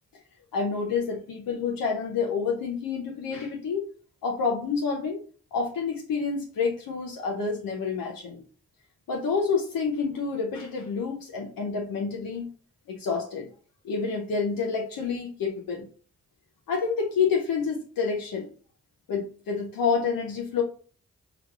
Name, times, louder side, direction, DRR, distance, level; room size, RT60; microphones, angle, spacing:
voice 1, 0.5-3.9 4.2-5.2 5.5-8.4 9.1-12.5 12.9-13.5 13.8-15.9 16.7-18.5 19.1-20.6, left 5 dB, 90° left, 0 dB, 0.6 m, -28 dB
4.9 x 2.3 x 2.3 m, 0.41 s
cardioid pair, 45°, 33 cm